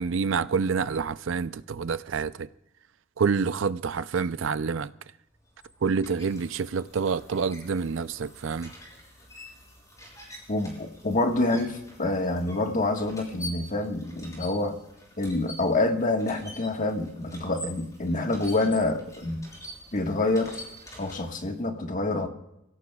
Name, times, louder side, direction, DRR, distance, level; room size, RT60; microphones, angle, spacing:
voice 1, 0.0-2.5 3.2-4.9 5.8-8.7, right 5 dB, 75° right, 0.5 m, -27 dB
sound 1, 5.3-21.6, left 1 dB, 15° left, 6.7 m, -46 dB
voice 2, 10.5-14.7 15.2-19.5 19.9-20.5 21.0-22.3, left 2 dB, 45° left, 1.5 m, -27 dB
29.5 x 16.5 x 2.3 m
head